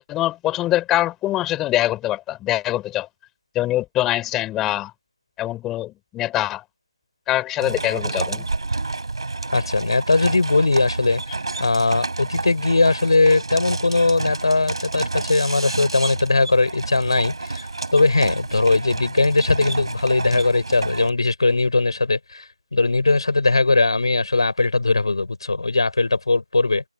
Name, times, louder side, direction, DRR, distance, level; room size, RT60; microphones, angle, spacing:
voice 1, 0.0-3.1 3.5-4.9 5.4-6.6 7.3-8.5, left 15 dB, 5° left, 4.2 m, -23 dB
sound 1, 7.6-21.1, right 3 dB, 55° right, 4.9 m, -29 dB
voice 2, 9.5-11.2 11.6-17.7 17.9-26.8, left 3 dB, 55° left, 7.3 m, -19 dB
figure-of-eight pair, 165°, 3 cm